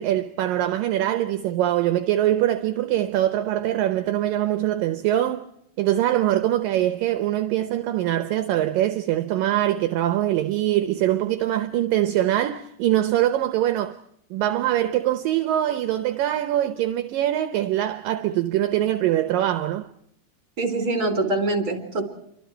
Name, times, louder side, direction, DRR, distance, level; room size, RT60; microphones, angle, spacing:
voice 1, 0.0-5.5 5.8-14.0 14.3-19.9, right 13 dB, 70° right, 2.5 m, -23 dB
voice 2, 20.6-22.0, right 2 dB, 25° right, 4.1 m, -24 dB
29.0 x 24.5 x 4.6 m
omnidirectional pair, 4.5 m